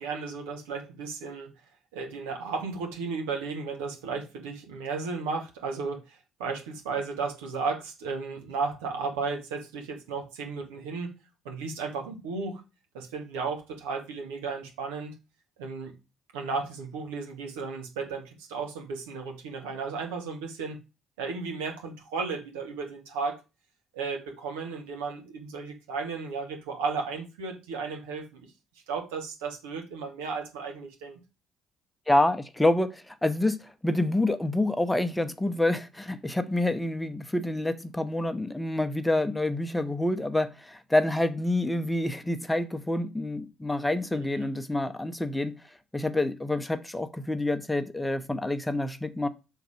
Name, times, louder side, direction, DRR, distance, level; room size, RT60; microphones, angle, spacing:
voice 1, 0.0-1.5 1.9-11.1 11.4-12.6 12.9-15.1 15.6-15.9 16.3-20.8 21.2-23.4 23.9-28.5 28.9-31.2 44.1-44.5, right 4 dB, 85° right, 1.6 m, -34 dB
voice 2, 32.1-45.6 45.9-49.3, left 1 dB, 10° left, 0.8 m, -27 dB
5.8 x 3.9 x 4.9 m
hypercardioid pair, 55°, 0 cm